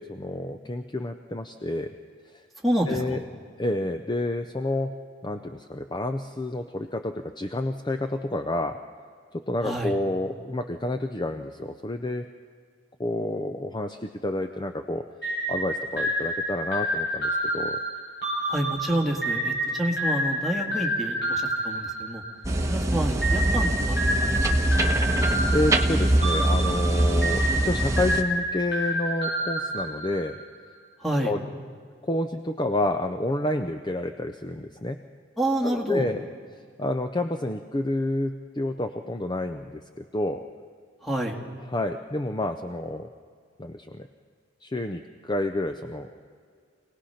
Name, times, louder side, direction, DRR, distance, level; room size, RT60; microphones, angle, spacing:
voice 1, 0.0-1.9 2.3-2.4 2.9-3.2 3.6-8.8 9.3-12.3 13.0-15.1 15.5-17.8 24.9-25.0 25.5-30.4 31.2-31.4 32.0-35.0 35.6-36.2 36.8-40.4 41.7-43.1 43.6-44.1 44.6-46.1, left 1 dB, 20° left, 6 dB, 0.5 m, -29 dB
voice 2, 2.6-3.2 9.6-10.0 18.5-22.2 22.7-24.0 24.3-24.7 31.0-31.3 35.4-36.1 41.0-41.4, right 1 dB, ahead, 0 dB, 1.9 m, -28 dB
sound 1, 15.2-22.6 23.2-30.5, equal, 55° left, 7.6 m, -29 dB
sound 2, 22.4-28.2, right 1 dB, 15° right, 1.0 m, -23 dB
26.0 x 18.5 x 5.7 m, 2.1 s
head